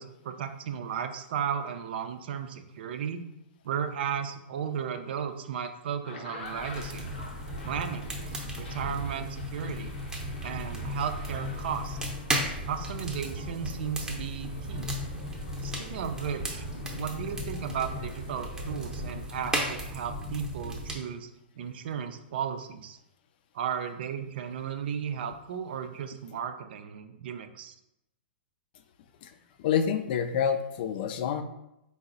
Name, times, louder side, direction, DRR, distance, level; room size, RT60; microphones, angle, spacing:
voice 1, 0.0-3.2 3.6-7.1 7.6-8.1 8.6-9.9 10.4-12.0 12.7-14.9 15.6-16.6 16.9-21.3 21.6-23.0 23.5-27.7, right 8 dB, 65° right, 8 dB, 0.4 m, -35 dB
sound 1, 5.9-19.3, left 2 dB, 75° left, 0.8 m, -47 dB
sound 2, 6.4-20.9, equal, 10° right, 0.7 m, -35 dB
voice 2, 29.6-31.4, left 7 dB, 55° left, 9 dB, 0.4 m, -27 dB
4.5 x 2.0 x 3.8 m, 0.85 s
hypercardioid pair, 125°, 6 cm